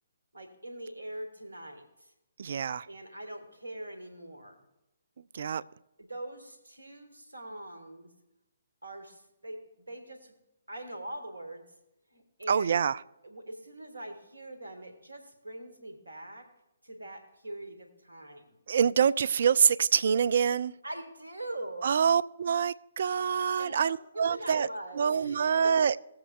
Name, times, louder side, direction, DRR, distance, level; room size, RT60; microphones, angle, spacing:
voice 1, 0.3-2.1 2.9-4.6 6.0-8.1 8.8-10.4 10.7-11.7 12.1-12.8 13.2-16.5 16.8-18.6 20.8-21.9 23.6-25.9, right 1 dB, 80° right, 1.9 m, -43 dB
voice 2, 2.4-2.9 5.3-5.6 12.5-13.0 18.7-20.7 21.8-24.7 25.0-26.0, right 7 dB, 55° right, 0.4 m, -26 dB
18.5 x 7.9 x 2.4 m
figure-of-eight pair, 130°, 0 cm